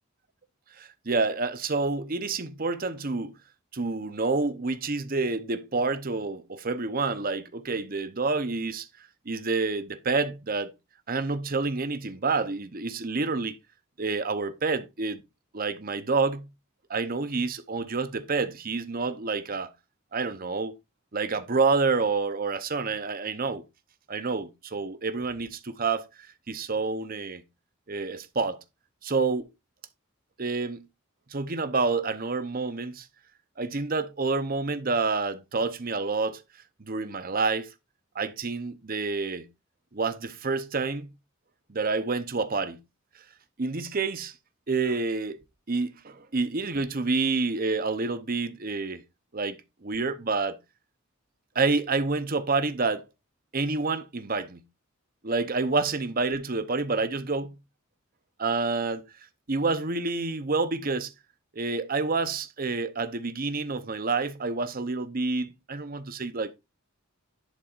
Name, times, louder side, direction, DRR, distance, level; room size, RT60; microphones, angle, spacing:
voice 1, 0.8-3.3 3.7-8.9 9.3-10.7 11.1-13.6 14.0-15.2 15.5-16.5 16.9-19.7 20.1-20.7 21.1-23.6 24.1-26.0 26.5-27.4 27.9-28.6 29.0-29.5 30.4-30.8 31.3-33.1 33.6-36.4 36.8-37.7 38.1-39.5 39.9-41.1 41.7-42.8 43.6-44.3 44.7-45.4 45.7-49.0 49.3-50.6 51.5-53.1 53.5-54.6 55.2-57.5 58.4-59.0 59.5-61.1 61.5-66.5, right 3 dB, 45° right, 0.8 m, -28 dB
11.0 x 7.4 x 2.5 m
head